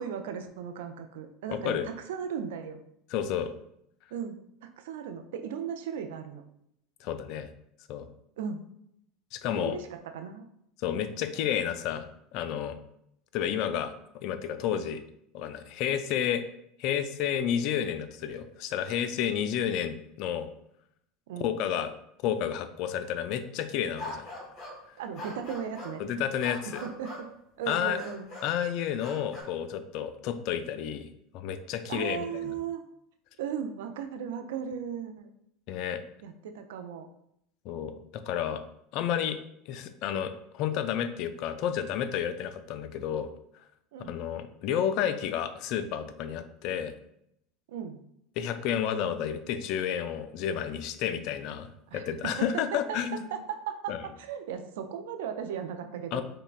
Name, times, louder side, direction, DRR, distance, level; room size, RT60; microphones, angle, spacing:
voice 1, 0.0-2.8 4.1-6.4 8.4-8.6 9.5-10.5 21.3-21.5 25.0-26.0 26.8-27.3 27.6-28.3 31.9-32.8 33.4-35.3 36.2-37.1 43.9-44.1 47.7-48.0 51.9-56.2, right 7 dB, 75° right, 7 dB, 0.4 m, -36 dB
voice 2, 1.5-1.9 3.1-3.5 7.0-7.5 7.9-8.1 9.3-9.8 10.8-12.1 12.3-12.8 13.3-13.9 14.2-15.0 15.3-16.4 16.8-20.5 21.4-21.9 22.2-24.3 26.0-26.8 27.7-28.0 28.4-31.1 31.3-32.5 35.7-36.0 37.7-38.6 38.9-39.4 39.7-43.3 44.0-46.9 48.4-53.3 53.9-54.0 56.1-56.2, left 9 dB, 60° left, 10 dB, 0.3 m, -31 dB
sound 1, 24.0-24.8 25.1-26.0 26.4-27.3 27.6-28.5 29.0-29.4, left 1 dB, 45° left, 1.3 m, -42 dB
5.2 x 2.1 x 2.4 m, 0.74 s
hypercardioid pair, 85°, 0 cm